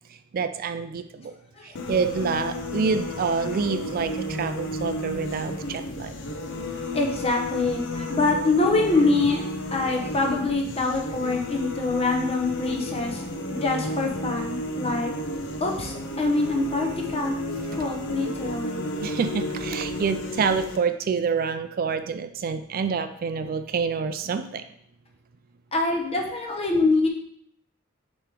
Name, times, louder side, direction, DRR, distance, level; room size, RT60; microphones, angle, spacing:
voice 1, 0.1-1.3 1.6-6.1 19.0-24.6, right 5 dB, 45° right, 9 dB, 0.3 m, -27 dB
sound 1, 1.8-20.8, left 1 dB, 60° left, 0.7 m, -32 dB
voice 2, 6.9-13.2 13.6-15.1 15.6-17.4 17.7-18.8 25.7-27.1, left 3 dB, 30° left, 1 dB, 0.9 m, -25 dB
6.6 x 3.1 x 5.0 m, 0.70 s
head